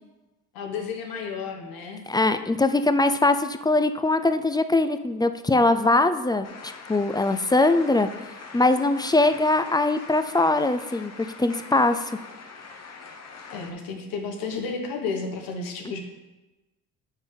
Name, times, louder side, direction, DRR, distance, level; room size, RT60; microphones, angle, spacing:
voice 1, 0.5-2.0 13.5-16.0, left 4 dB, 90° left, 3 dB, 1.2 m, -32 dB
voice 2, 2.1-8.1 8.5-11.1 11.4-12.1, left 2 dB, 15° left, 9 dB, 0.3 m, -22 dB
sound 1, 6.4-13.7, left 4 dB, 50° left, 1.0 m, -43 dB
8.3 x 3.5 x 5.4 m, 1.1 s
cardioid pair, 80°, 34 cm